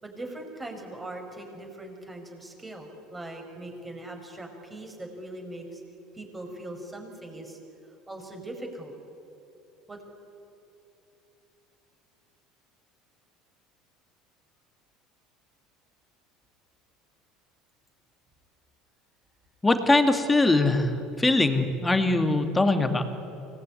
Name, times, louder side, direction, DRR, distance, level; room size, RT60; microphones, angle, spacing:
voice 1, 0.0-5.8 6.1-7.6 8.1-8.9 9.9-10.0, right 1 dB, 15° right, 3 dB, 5.6 m, -40 dB
voice 2, 19.6-23.1, left 2 dB, 10° left, 7 dB, 2.3 m, -22 dB
24.5 x 19.5 x 9.9 m, 2.9 s
supercardioid pair, 115°, 0 cm